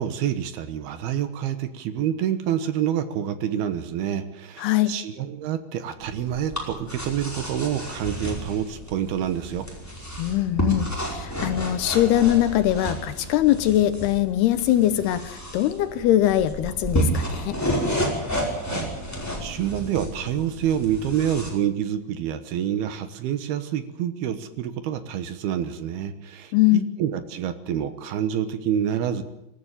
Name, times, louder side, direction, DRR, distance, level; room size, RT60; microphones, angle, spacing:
voice 1, 0.0-9.7 18.7-18.9 19.4-29.2, right 10 dB, 70° right, 11 dB, 2.9 m, -27 dB
voice 2, 4.6-4.9 10.2-17.6 26.5-26.9, left 13 dB, 75° left, 12 dB, 2.7 m, -22 dB
sound 1, 6.0-21.5, right 1 dB, 5° left, 4.5 m, -31 dB
25.0 x 14.0 x 9.1 m, 0.85 s
omnidirectional pair, 5.1 m